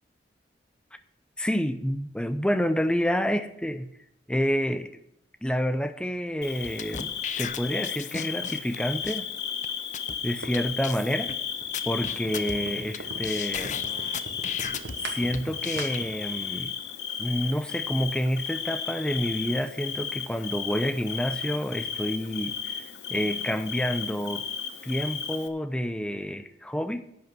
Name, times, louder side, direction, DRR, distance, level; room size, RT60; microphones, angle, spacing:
voice 1, 1.4-3.8 4.3-4.9 5.4-9.3 10.2-11.3 11.9-13.7 15.0-16.7 17.2-22.8 23.1-24.5 24.8-27.0, equal, 5° left, 10 dB, 0.7 m, -28 dB
Bird / Cricket, 6.4-25.5, left 7 dB, 70° left, 1.0 m, -34 dB
sound 1, 6.6-8.7 9.0-9.2 9.6-9.7 9.9-10.1 10.5-10.6 10.8-11.3 11.7-13.0 13.2-14.9 15.3-16.0, left 7 dB, 45° left, 0.6 m, -35 dB
sound 2, 10.4-16.3, right 3 dB, 90° right, 1.3 m, -42 dB
11.0 x 8.6 x 6.1 m, 0.76 s
head